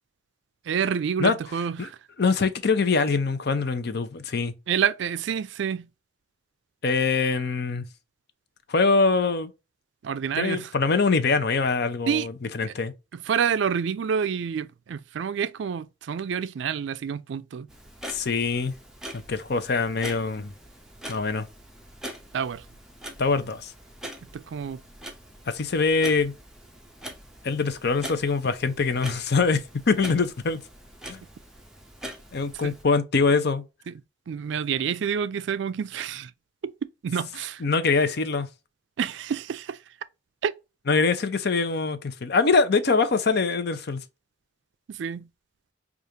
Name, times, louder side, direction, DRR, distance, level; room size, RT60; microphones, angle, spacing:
voice 1, 0.7-2.0 4.7-5.9 10.0-10.7 12.1-12.3 13.1-17.7 22.3-22.6 24.3-24.8 32.5-32.7 33.9-34.0 34.3-36.3 36.6-36.7 37.0-37.6 39.0-39.8 40.4-40.5 44.9-45.3, right 7 dB, 65° right, 0.3 m, -28 dB
voice 2, 2.2-4.5 6.8-7.9 8.7-9.5 10.4-12.9 18.1-18.7 19.1-20.5 21.1-21.5 23.2-23.7 25.5-26.3 27.4-30.6 31.1-31.2 32.3-33.6 37.6-38.5 40.9-44.0, left 4 dB, 55° left, 0.6 m, -23 dB
Clock, 17.7-32.8, right 1 dB, 5° right, 0.6 m, -43 dB
4.9 x 2.4 x 2.8 m
head